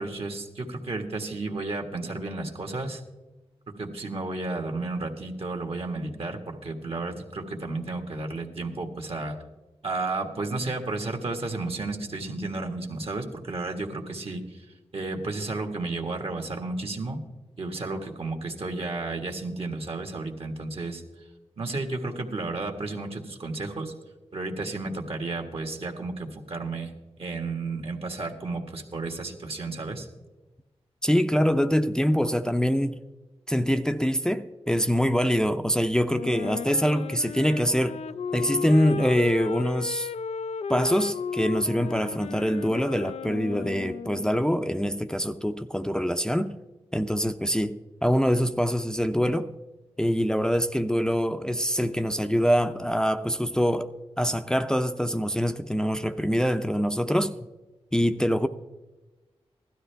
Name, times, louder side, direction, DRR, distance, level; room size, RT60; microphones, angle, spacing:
voice 1, 0.0-3.0 3.7-9.4 9.8-14.6 14.9-17.2 17.6-21.0 21.6-23.9 24.3-26.9 27.2-30.1, right 3 dB, 60° right, 1.7 m, -32 dB
voice 2, 31.0-33.0 33.5-38.0 38.3-40.1 40.7-46.5 46.9-49.5 50.0-53.9 54.2-57.5 57.9-58.5, equal, 5° left, 0.6 m, -24 dB
Wind instrument woodwind instrument, 36.1-44.5, left 6 dB, 80° left, 0.4 m, -34 dB
16.0 x 12.5 x 3.4 m
cardioid pair, 50°, 11 cm